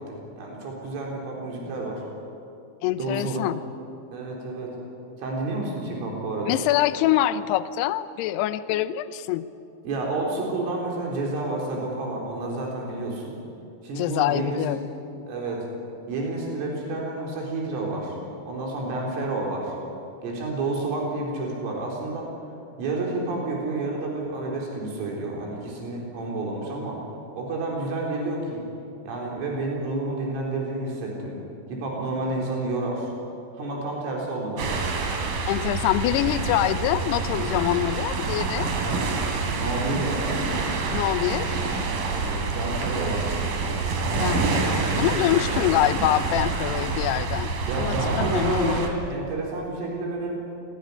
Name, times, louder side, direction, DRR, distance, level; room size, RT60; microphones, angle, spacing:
voice 1, 0.0-2.0 2.9-3.5 4.1-4.8 5.2-6.6 9.8-13.3 13.8-14.7 15.3-15.7 16.1-18.2 18.5-19.7 20.2-22.3 22.8-27.0 27.3-28.6 29.0-31.4 31.7-33.1 33.5-34.8 38.6-39.0 39.6-40.4 42.1-43.4 45.5-45.8 47.7-50.4, right 2 dB, 80° right, -2 dB, 6.4 m, -30 dB
voice 2, 2.8-3.6 6.5-9.5 14.0-14.8 35.5-38.7 40.9-41.7 44.2-48.8, left 14 dB, 85° left, 12 dB, 2.4 m, -25 dB
sound 1, 34.6-48.9, right 4 dB, 50° right, 3.8 m, -27 dB
28.0 x 19.0 x 9.8 m, 2.6 s
omnidirectional pair, 5.7 m